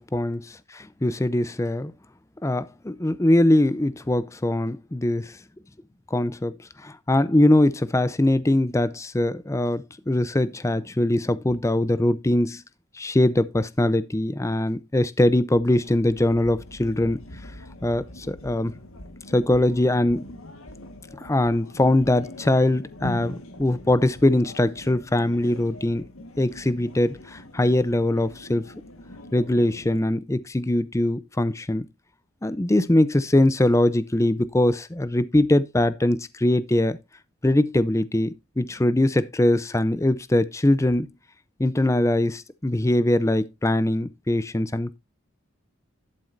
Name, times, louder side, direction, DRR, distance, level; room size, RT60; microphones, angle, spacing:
voice 1, 0.0-1.9 2.4-5.4 6.1-6.6 6.8-12.6 13.0-17.2 17.8-18.7 19.3-20.3 21.1-26.0 26.4-28.7 29.3-31.9 32.4-37.0 37.4-41.1 41.6-45.0, left 1 dB, 15° left, 0.5 m, -22 dB
sound 1, 15.7-30.0, left 1 dB, 80° left, 1.5 m, -42 dB
11.5 x 7.7 x 2.6 m
head